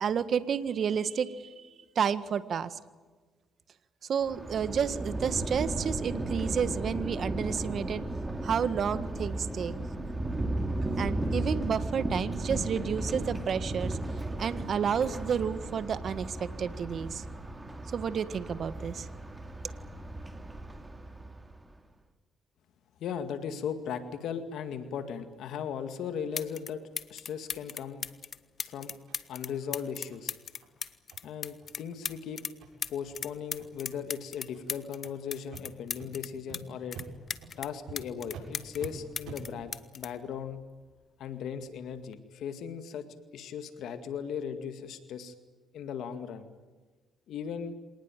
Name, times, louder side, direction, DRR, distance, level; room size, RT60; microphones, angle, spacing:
voice 1, 0.0-1.7 1.9-2.8 4.1-8.0 8.4-9.7 11.0-14.0 14.3-17.2 17.9-19.1, right 7 dB, 55° right, 13 dB, 1.6 m, -30 dB
Thunder, 4.2-21.6, right 1 dB, 15° right, 2.9 m, -35 dB
voice 2, 23.0-26.8 27.1-28.0 28.6-28.9 29.3-30.3 31.2-32.4 32.9-37.0 37.6-40.6 41.2-43.1 43.3-45.3 45.7-46.5 47.3-47.7, left 7 dB, 75° left, 9 dB, 2.1 m, -37 dB
sound 1, 25.9-26.0 26.3-26.7 27.0-32.5 32.8-36.6 36.9-38.9 39.2-41.0 41.9-42.1, left 6 dB, 50° left, 1.3 m, -37 dB
sound 2, 29.1-29.2 29.6-29.7 30.1-30.2 30.6-30.7 31.1-31.2 31.6-31.7 32.1-32.2 32.6-32.7 33.1-33.2 33.6-33.9 34.5-34.6 35.0-35.1 35.5-35.6 36.0-36.1 36.5-36.6 36.9-37.1 37.4-37.5 37.9-38.0 38.3-38.5 38.8-38.9 39.2-39.4, right 8 dB, 80° right, 7.9 m, -46 dB
26.5 x 19.5 x 9.1 m, 1.3 s
cardioid pair, 90°, 0 cm